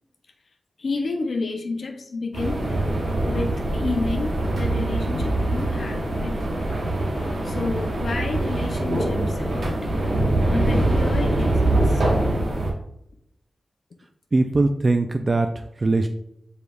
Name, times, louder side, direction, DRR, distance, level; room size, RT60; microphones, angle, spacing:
voice 1, 0.8-2.7 3.3-6.6 7.4-9.9 10.5-12.3, left 3 dB, 75° left, 4 dB, 0.5 m, -30 dB
sound 1, 2.3-12.7, right 1 dB, 90° right, 1.1 m, -23 dB
voice 2, 14.3-16.1, right 2 dB, 45° right, 6 dB, 0.3 m, -21 dB
5.1 x 4.6 x 2.3 m, 0.77 s
cardioid pair, 60°, 0 cm